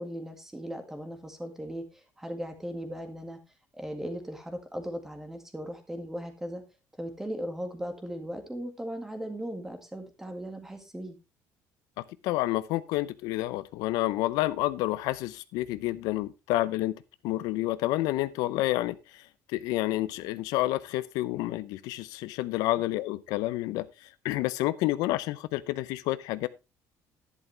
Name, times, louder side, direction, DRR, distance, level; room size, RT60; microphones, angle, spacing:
voice 1, 0.0-3.4 3.7-6.6 7.0-11.2 22.8-22.9, equal, 5° right, 6 dB, 1.9 m, -38 dB
voice 2, 12.2-16.9 17.2-26.5, left 16 dB, 80° left, 16 dB, 0.6 m, -29 dB
11.0 x 11.0 x 3.3 m, 0.25 s
cardioid pair, 175°, 6 cm